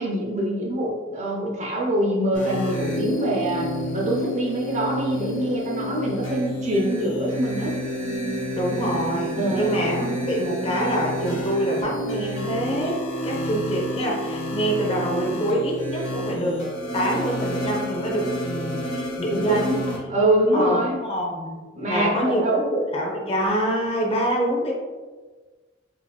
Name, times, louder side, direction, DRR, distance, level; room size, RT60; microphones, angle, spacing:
voice 1, 0.0-7.8 9.3-9.9 19.3-21.0 21.7-22.6, right 1 dB, 40° right, -2 dB, 0.7 m, -24 dB
sound 1, 2.3-20.0, equal, 85° left, 1.1 m, -29 dB
voice 2, 8.5-16.6 16.9-19.8 20.5-21.6 21.9-24.7, right 1 dB, 30° left, -1 dB, 0.7 m, -26 dB
4.9 x 2.8 x 2.2 m, 1.3 s
head